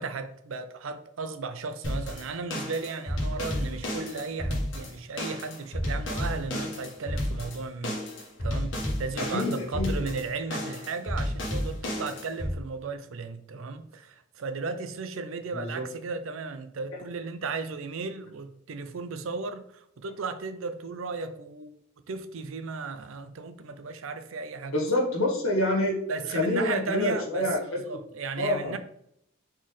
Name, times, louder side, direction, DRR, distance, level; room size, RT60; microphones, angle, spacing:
voice 1, 0.0-8.0 8.4-21.7 22.1-24.8 26.1-28.8, right 4 dB, 75° right, 0.5 m, -35 dB
sound 1, 1.8-12.5, left 1 dB, 60° left, 1.3 m, -32 dB
voice 2, 9.3-10.0 15.5-15.8 24.7-26.0 26.3-27.8 28.4-28.7, left 1 dB, 80° left, 1.6 m, -27 dB
4.4 x 3.7 x 3.1 m
head